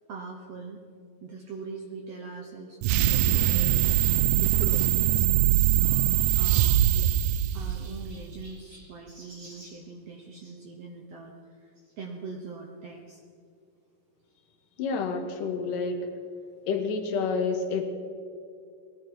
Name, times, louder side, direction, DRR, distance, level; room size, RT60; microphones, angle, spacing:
voice 1, 0.1-0.8 1.2-5.3 5.8-7.1 7.5-13.2, right 4 dB, 70° right, 1 dB, 1.5 m, -42 dB
sound 1, 2.8-8.2, right 13 dB, 90° right, 1.7 m, -22 dB
Chirp tweet, 7.1-10.6 11.7-11.9 12.6-12.7 12.9-13.0 14.3-14.4, right 1 dB, 30° right, 3.6 m, -54 dB
voice 2, 14.8-16.0 16.7-17.8, left 5 dB, 70° left, 4 dB, 2.7 m, -28 dB
20.0 x 11.5 x 4.7 m, 2.4 s
omnidirectional pair, 4.1 m